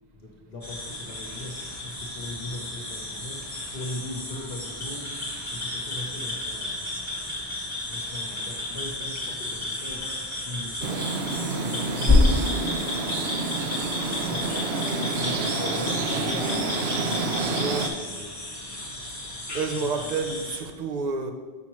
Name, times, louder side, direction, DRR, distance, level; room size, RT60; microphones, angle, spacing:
voice 1, 0.1-7.3 7.9-13.4 14.2-18.3 19.3-20.2, left 1 dB, 60° left, -1 dB, 1.1 m, -40 dB
Forest Ambience, 0.6-20.6, left 2 dB, 15° left, 1.6 m, -30 dB
sound 1, 10.8-17.9, right 3 dB, 75° right, 0.9 m, -29 dB
voice 2, 17.5-17.9 19.1-21.3, right 4 dB, 45° right, 5 dB, 0.7 m, -30 dB
7.5 x 5.7 x 3.0 m, 1.5 s
omnidirectional pair, 1.1 m